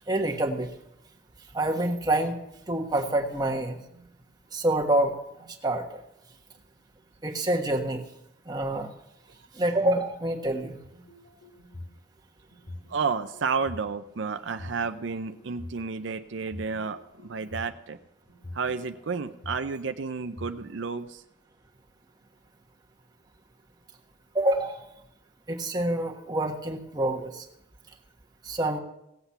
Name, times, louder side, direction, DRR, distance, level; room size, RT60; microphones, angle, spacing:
voice 1, 0.1-0.7 1.5-2.4 2.7-3.8 4.5-5.1 5.6-6.0 7.2-8.0 8.5-8.9 9.5-10.8 24.3-24.8 25.5-27.4 28.4-28.8, right 1 dB, 20° right, 1 dB, 1.3 m, -27 dB
sound 1, 10.8-12.0 12.5-13.8 14.4-15.7 16.4-17.7 18.3-19.7 20.2-20.8, left 1 dB, 50° left, 2.6 m, -44 dB
voice 2, 12.9-18.0 18.5-21.2, right 5 dB, 75° right, 8 dB, 0.6 m, -31 dB
17.0 x 8.0 x 5.7 m, 0.84 s
head